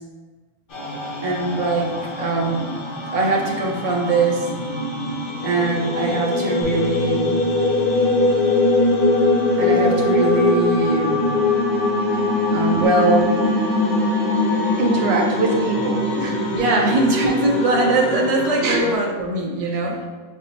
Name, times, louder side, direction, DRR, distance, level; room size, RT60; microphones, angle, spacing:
sound 1, 0.7-19.0, left 2 dB, 55° left, 0.9 m, -22 dB
voice 1, 1.2-1.9 2.2-2.7 3.1-4.5 5.4-7.3 9.6-11.3 12.5-13.5 16.5-20.1, right 2 dB, 45° right, -1 dB, 0.6 m, -21 dB
Bass guitar, 6.6-12.9, left 5 dB, 80° left, 1.3 m, -37 dB
voice 2, 14.8-16.4 18.6-18.8 19.6-19.8, right 3 dB, 85° right, 0 dB, 0.9 m, -23 dB
5.2 x 2.0 x 2.9 m, 1.4 s
omnidirectional pair, 1.1 m